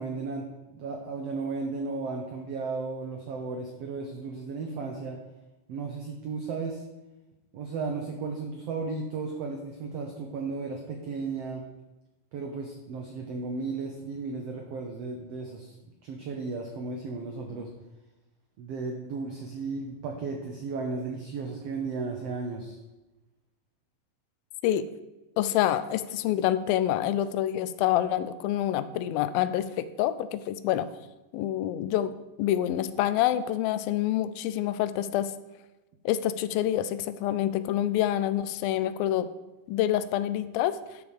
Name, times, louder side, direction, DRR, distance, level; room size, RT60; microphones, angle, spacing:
voice 1, 0.0-5.2 5.7-6.8 7.5-11.6 12.3-15.7 16.0-17.7 18.6-22.8, right 4 dB, 90° right, 2 dB, 1.4 m, -34 dB
voice 2, 25.4-30.9 31.3-35.3 36.1-39.3 39.7-40.8, left 12 dB, 85° left, 13 dB, 2.3 m, -27 dB
12.0 x 5.2 x 4.9 m, 1.1 s
omnidirectional pair, 4.2 m